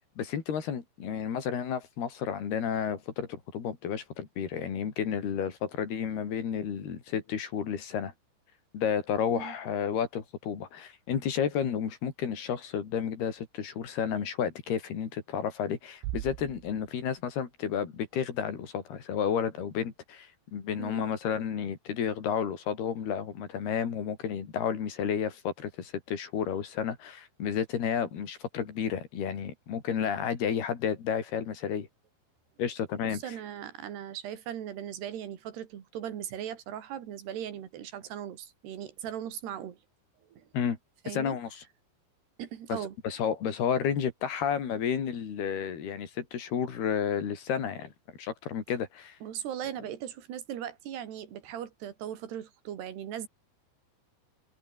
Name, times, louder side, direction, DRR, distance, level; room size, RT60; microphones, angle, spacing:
voice 1, 0.2-8.1 8.7-31.9 32.6-33.2 40.5-40.8 41.1-41.6 42.7-42.8 43.0-47.9 48.2-49.2, left 8 dB, 60° left, 5.3 m, -31 dB
Bass drum, 16.0-17.7, right 17 dB, 90° right, 3.4 m, -40 dB
voice 2, 33.1-39.8 40.2-40.5 41.0-41.4 42.4-43.0 49.2-53.3, right 10 dB, 65° right, 4.5 m, -38 dB
omnidirectional pair, 5.3 m